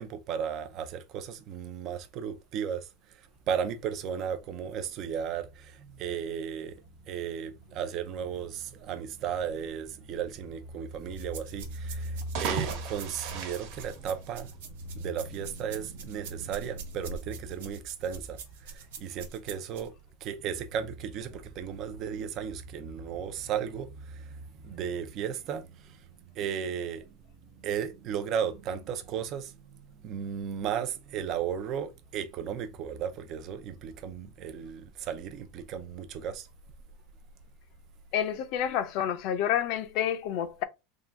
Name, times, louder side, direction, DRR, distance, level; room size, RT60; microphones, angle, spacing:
voice 1, 0.0-6.8 7.1-19.9 20.2-26.0 26.3-27.2 27.6-29.6 29.9-36.5, right 7 dB, 40° right, 0.6 m, -35 dB
sound 1, 11.1-19.9, right 5 dB, 90° right, 1.2 m, -45 dB
sound 2, 12.1-14.7, right 6 dB, 55° right, 1.2 m, -36 dB
voice 2, 38.1-40.6, left 10 dB, 50° left, 0.6 m, -29 dB
3.7 x 2.4 x 3.9 m
supercardioid pair, 160°, 0 cm